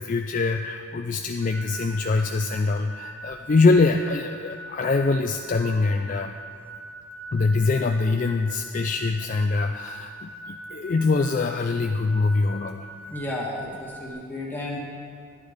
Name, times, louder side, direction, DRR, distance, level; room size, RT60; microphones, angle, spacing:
voice 1, 0.0-6.4 7.3-12.9, left 3 dB, 35° left, 4 dB, 0.3 m, -24 dB
sound 1, 1.4-14.1, right 2 dB, 25° right, 1.3 m, -42 dB
voice 2, 13.1-14.8, left 1 dB, 10° left, -4 dB, 1.6 m, -32 dB
12.0 x 9.7 x 5.1 m, 2.3 s
head